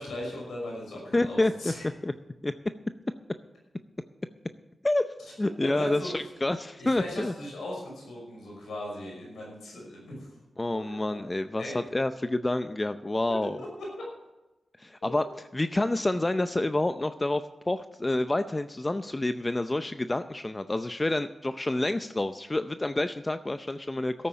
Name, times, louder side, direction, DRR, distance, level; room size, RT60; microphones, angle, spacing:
voice 1, 0.0-1.8 5.6-6.1 6.8-10.3 10.7-11.2 11.6-11.8 13.3-13.9 15.0-15.2, left 1 dB, 90° left, -2 dB, 5.7 m, -38 dB
voice 2, 1.1-1.7 2.0-2.1 2.4-2.5 4.8-5.1 5.4-7.3 10.6-13.6 14.8-24.3, left 2 dB, 30° left, 10 dB, 0.6 m, -28 dB
13.0 x 8.6 x 7.4 m, 1.0 s
cardioid pair, 40°, 0 cm